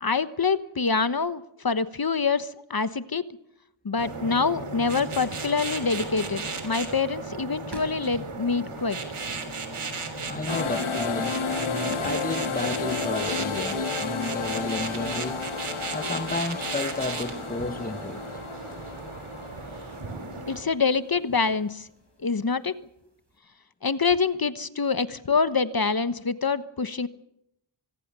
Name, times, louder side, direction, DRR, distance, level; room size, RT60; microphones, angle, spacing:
voice 1, 0.0-3.4 3.8-9.0 20.4-21.9 22.2-22.8 23.8-27.1, left 5 dB, 45° left, 1.2 m, -26 dB
sound 1, 4.0-20.6, right 4 dB, 90° right, 3.4 m, -35 dB
sound 2, 4.2-23.3, right 2 dB, 55° right, 5.8 m, -49 dB
voice 2, 10.2-15.4 15.9-18.3, left 3 dB, 15° left, 1.1 m, -32 dB
sound 3, 10.5-20.8, left 5 dB, 80° left, 1.9 m, -32 dB
26.0 x 20.5 x 6.8 m
cardioid pair, 45°, 49 cm